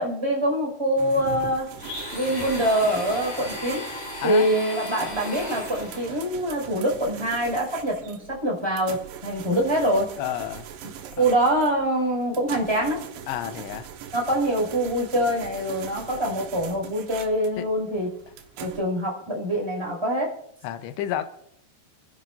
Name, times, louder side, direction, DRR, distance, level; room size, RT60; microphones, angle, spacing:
voice 1, 0.0-1.7 2.1-3.9 4.2-10.1 11.2-13.0 14.1-18.1 18.6-20.3, right 1 dB, 5° right, -2 dB, 5.1 m, -24 dB
sound 1, 1.0-18.8, right 9 dB, 80° right, 3.4 m, -41 dB
Domestic sounds home sounds, 1.8-6.2, left 1 dB, 50° left, 7.0 m, -36 dB
voice 2, 4.2-4.5 10.2-10.7 11.2-11.3 13.3-13.9 17.6-17.7 20.6-21.2, left 11 dB, 80° left, 8 dB, 3.0 m, -30 dB
29.0 x 11.0 x 2.7 m, 0.72 s
omnidirectional pair, 5.2 m